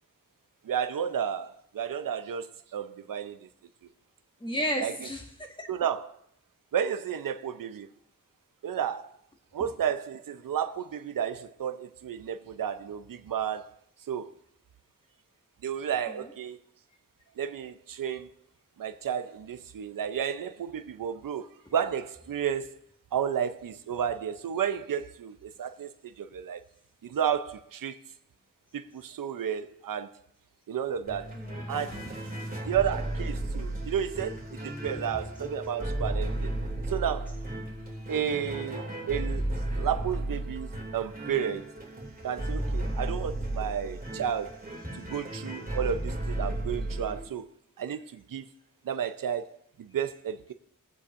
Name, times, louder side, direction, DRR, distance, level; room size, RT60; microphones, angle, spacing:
voice 1, 0.6-3.5 4.8-4.9 5.7-6.2 6.7-7.9 8.6-9.1 9.5-13.7 14.1-14.3 15.6-16.6 17.4-18.3 18.8-22.8 23.1-26.6 27.0-28.0 28.7-30.1 30.7-31.4 31.7-32.0 32.7-36.5 36.9-37.3 38.1-39.5 39.7-41.7 42.2-44.6 44.9-47.5 47.8-48.5 48.8-50.5, right 8 dB, 90° right, 0.7 m, -32 dB
voice 2, 4.4-5.7 16.1-16.3 31.3-32.0 42.8-43.0, equal, 15° left, 1.7 m, -34 dB
sound 1, 31.1-47.2, right 1 dB, 25° right, 2.7 m, -34 dB
21.5 x 8.2 x 2.6 m
wide cardioid pair, 80°, 32 cm